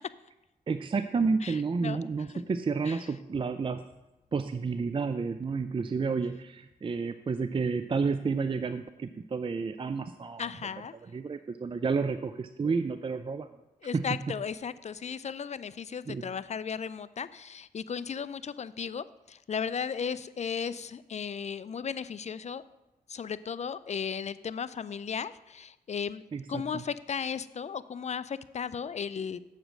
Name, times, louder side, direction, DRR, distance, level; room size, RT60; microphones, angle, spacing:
voice 1, 0.7-3.8 4.3-10.5 11.0-13.5 13.9-14.1 16.1-16.3 26.3-26.8, right 4 dB, 35° right, 10 dB, 0.4 m, -30 dB
voice 2, 1.4-2.0 2.8-3.0 10.4-10.9 13.8-22.6 23.1-26.2 26.5-29.4, left 6 dB, 45° left, 16 dB, 0.4 m, -35 dB
7.4 x 5.1 x 6.3 m, 1.0 s
cardioid pair, 55°, 16 cm